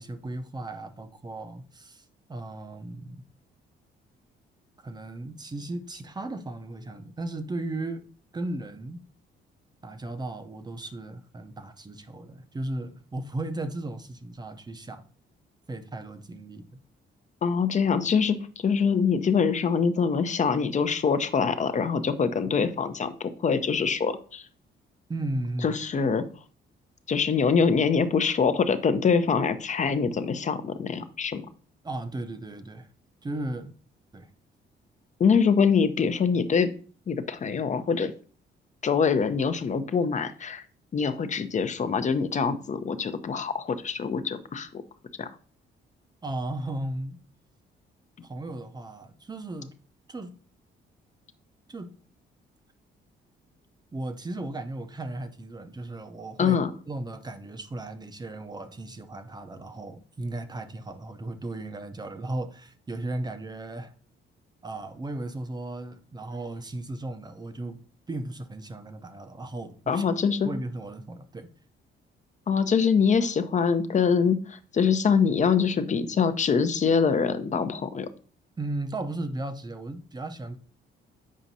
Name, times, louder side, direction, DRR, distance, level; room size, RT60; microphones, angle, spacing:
voice 1, 0.0-3.2 4.8-8.0 8.3-9.0 9.8-15.0 15.7-16.8 25.1-25.8 31.8-32.9 33.2-33.7 34.1-34.3 46.2-47.2 48.2-49.7 50.1-50.3 51.7-52.0 53.9-56.6 56.9-63.9 64.6-67.8 68.1-70.1 70.4-71.5 78.6-80.6, right 2 dB, 20° right, 0.6 m, -36 dB
voice 2, 17.4-24.5 25.6-26.2 27.1-31.4 35.2-36.7 37.1-38.1 38.8-40.6 40.9-44.7 45.2-45.3 56.4-56.7 69.9-70.5 72.5-78.1, left 6 dB, 35° left, 0.6 m, -24 dB
7.3 x 5.0 x 2.7 m
cardioid pair, 90°, 20 cm